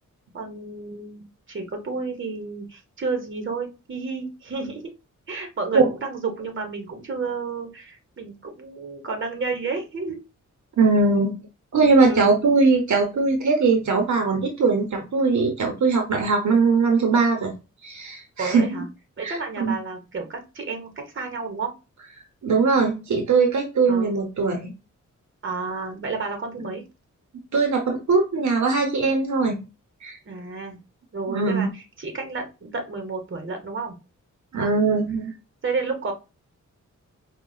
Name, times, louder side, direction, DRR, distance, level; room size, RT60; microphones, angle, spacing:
voice 1, 0.3-4.9 5.3-10.2 12.1-12.5 18.4-18.9 19.2-21.7 23.9-24.1 25.4-26.8 30.2-30.8 31.1-33.9 34.6-35.0 35.6-36.1, right 4 dB, 40° right, 3 dB, 1.1 m, -31 dB
voice 2, 10.8-11.4 11.7-17.5 17.8-18.8 19.2-19.8 22.4-24.7 27.5-29.6 30.0-30.2 31.3-31.7 34.5-35.3, right 4 dB, 65° right, 3 dB, 0.9 m, -20 dB
4.7 x 2.3 x 2.3 m, 0.28 s
wide cardioid pair, 125°, 31 cm